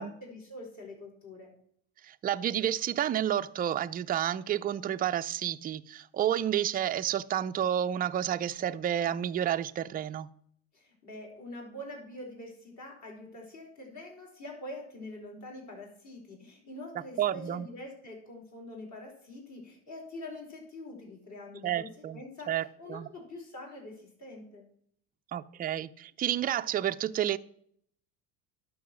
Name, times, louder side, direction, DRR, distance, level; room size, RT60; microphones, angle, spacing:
voice 1, 0.0-1.5 10.7-24.7, left 1 dB, 40° left, 5.0 m, -45 dB
voice 2, 2.0-10.3 17.2-17.7 21.6-22.2 22.5-23.1 25.3-27.4, right 10 dB, 20° right, 0.4 m, -30 dB
11.0 x 6.5 x 6.1 m
supercardioid pair, 105°, 43 cm